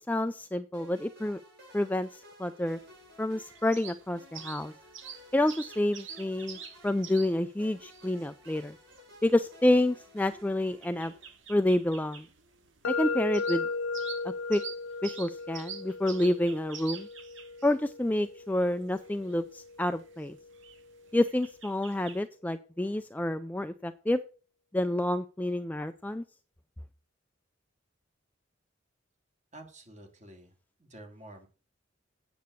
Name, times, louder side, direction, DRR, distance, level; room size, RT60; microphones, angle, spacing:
voice 1, 0.0-1.4 1.7-2.8 3.2-4.7 5.3-6.6 6.8-8.8 9.2-11.1 11.5-12.3 12.9-13.7 14.5-14.6 15.0-17.1 17.6-20.4 21.1-24.2 24.7-26.2, left 1 dB, 10° left, 9 dB, 0.4 m, -28 dB
sound 1, 0.7-11.4, left 1 dB, 60° right, 6.9 m, -55 dB
sound 2, 2.7-22.2, right 7 dB, 80° right, 2.0 m, -48 dB
sound 3, 12.8-20.7, left 4 dB, 85° left, 0.6 m, -37 dB
voice 2, 29.5-31.5, right 1 dB, 40° right, 4 dB, 2.6 m, -50 dB
8.6 x 7.9 x 6.3 m, 0.36 s
head